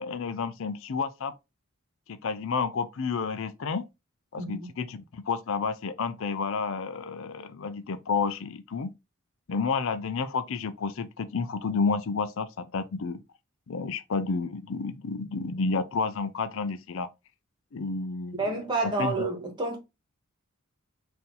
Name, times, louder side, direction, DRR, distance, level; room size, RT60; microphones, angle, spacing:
voice 1, 0.0-1.3 2.1-3.8 4.3-8.9 9.5-13.2 13.7-17.1 17.7-18.4 18.8-19.3, left 5 dB, 65° left, 0.5 m, -30 dB
voice 2, 4.4-4.7 18.4-19.8, right 3 dB, 20° right, 1.3 m, -29 dB
4.2 x 2.7 x 3.8 m
head